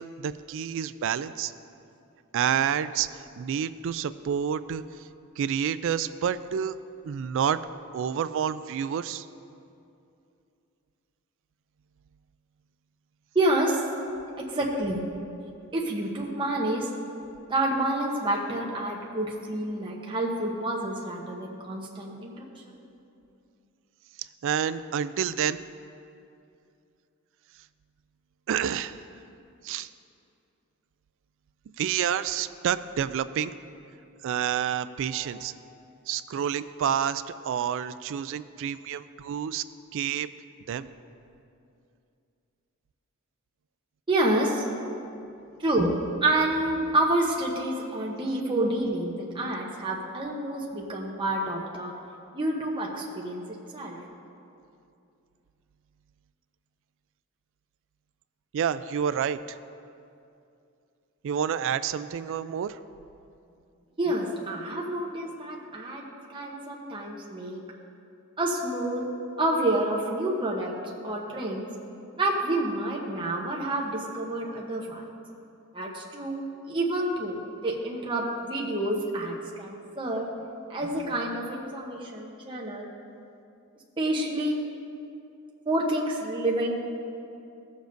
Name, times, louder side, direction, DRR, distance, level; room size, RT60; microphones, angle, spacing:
voice 1, 0.0-1.5 2.3-3.1 3.4-4.8 5.4-6.7 7.1-7.6 7.9-9.3 24.4-25.6 28.5-29.0 29.6-29.9 31.8-33.5 34.2-35.5 36.1-39.6 39.9-40.3 40.7-40.9 58.5-59.6 61.2-62.8, right 8 dB, 60° right, 13 dB, 0.3 m, -28 dB
voice 2, 13.3-13.8 14.5-15.0 15.7-16.9 17.5-22.3 22.6-22.8 35.1-35.3 44.1-44.6 45.6-45.9 46.2-51.9 52.3-53.4 53.7-54.0 64.0-67.6 68.4-69.1 69.4-70.7 71.0-71.7 72.1-75.0 75.7-76.4 76.7-80.3 80.7-82.9 84.0-84.6 85.7-86.8, right 1 dB, 20° right, -3 dB, 0.9 m, -28 dB
16.0 x 7.1 x 2.6 m, 2.6 s
head